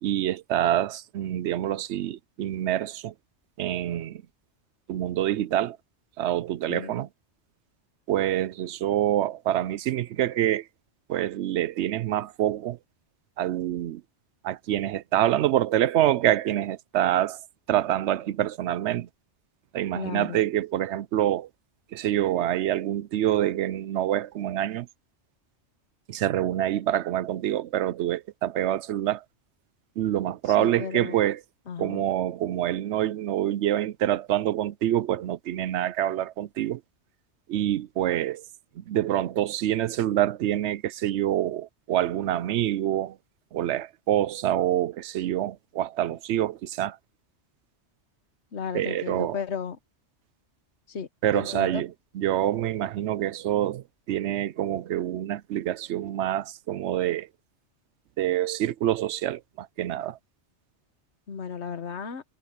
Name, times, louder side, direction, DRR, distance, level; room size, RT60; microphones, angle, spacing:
voice 1, 0.0-3.1 3.6-4.2 4.9-5.8 6.2-7.1 8.1-10.7 11.1-12.8 13.4-14.0 14.4-17.4 17.7-19.1 19.7-21.5 21.9-24.9 26.1-29.2 30.0-31.4 31.8-36.8 37.5-38.4 38.8-43.2 43.5-47.0 48.7-49.4 51.2-57.3 58.2-60.2, right 12 dB, 75° right, 0.8 m, -26 dB
voice 2, 19.9-20.4 30.6-31.2 31.7-32.0 48.5-49.8 50.9-51.1 51.3-51.8 61.3-62.2, left 6 dB, 70° left, 1.4 m, -34 dB
omnidirectional pair, 1.2 m